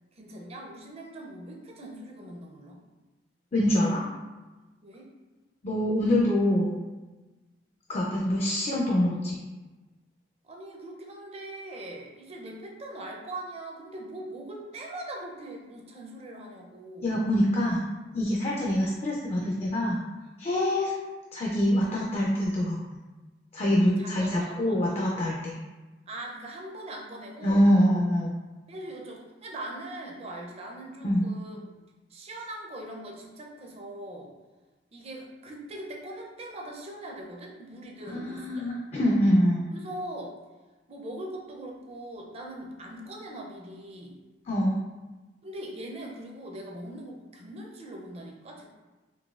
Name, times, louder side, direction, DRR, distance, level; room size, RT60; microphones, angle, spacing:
voice 1, 0.1-2.8 4.8-5.1 10.4-17.1 24.0-24.8 26.1-27.6 28.7-31.6 32.1-34.3 34.9-38.7 39.7-40.4 40.9-44.2 45.4-48.7, right 1 dB, 35° right, 0 dB, 0.5 m, -41 dB
voice 2, 3.5-4.0 5.6-6.7 7.9-9.4 17.0-17.8 18.1-20.0 20.4-20.9 21.3-23.0 23.5-25.6 27.4-28.4 31.0-31.3 38.2-39.7 44.5-44.8, equal, 35° left, -3 dB, 0.4 m, -25 dB
3.9 x 2.6 x 2.4 m, 1.2 s
head